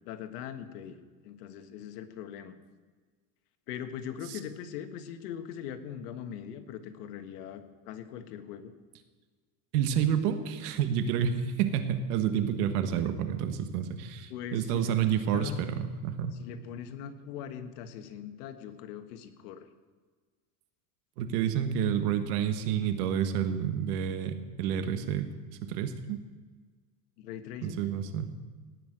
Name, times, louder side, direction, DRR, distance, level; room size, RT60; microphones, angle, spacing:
voice 1, 0.0-2.5 3.7-8.7 14.3-14.9 15.3-15.6 16.4-19.7 27.2-27.9, left 9 dB, 90° left, 8 dB, 1.6 m, -41 dB
voice 2, 9.7-16.3 21.2-25.3 25.6-26.2 27.6-28.3, right 8 dB, 80° right, 9 dB, 1.7 m, -29 dB
17.5 x 6.3 x 9.1 m, 1.5 s
supercardioid pair, 145°, 45 cm